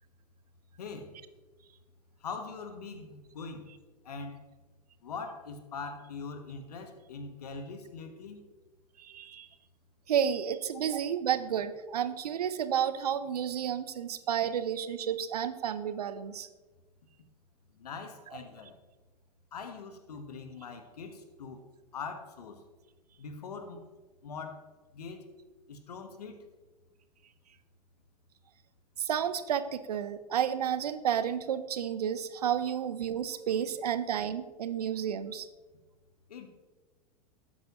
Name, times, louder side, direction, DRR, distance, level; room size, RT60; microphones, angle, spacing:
voice 1, 0.8-1.1 2.2-3.6 4.0-4.4 5.0-8.4 17.8-18.7 19.5-21.6 21.9-22.6 23.2-23.8 24.2-24.6 24.9-25.2 25.7-26.4 36.3-36.5, left 4 dB, 75° left, 7 dB, 1.3 m, -42 dB
voice 2, 9.0-9.5 10.1-16.5 29.0-35.5, right 9 dB, 75° right, 13 dB, 0.7 m, -31 dB
12.0 x 8.6 x 3.0 m, 1.3 s
figure-of-eight pair, 95°, 20 cm